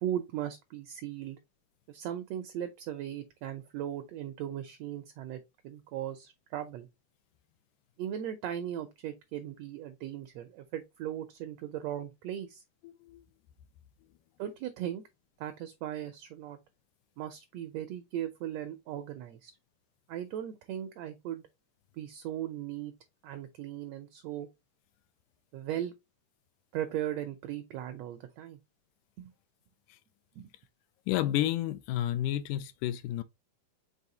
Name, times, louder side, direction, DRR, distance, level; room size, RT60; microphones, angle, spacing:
voice 1, 0.0-1.4 1.9-5.4 5.6-6.9 8.0-12.6 14.4-15.0 15.4-16.6 17.2-19.5 20.1-21.4 21.9-22.9 23.2-24.5 25.5-25.9 26.7-28.6 29.2-29.3 30.3-30.5, right 11 dB, 80° right, 1.5 m, -38 dB
voice 2, 12.8-13.2 31.1-33.2, left 13 dB, 85° left, 2.0 m, -31 dB
5.5 x 3.5 x 2.7 m
omnidirectional pair, 3.6 m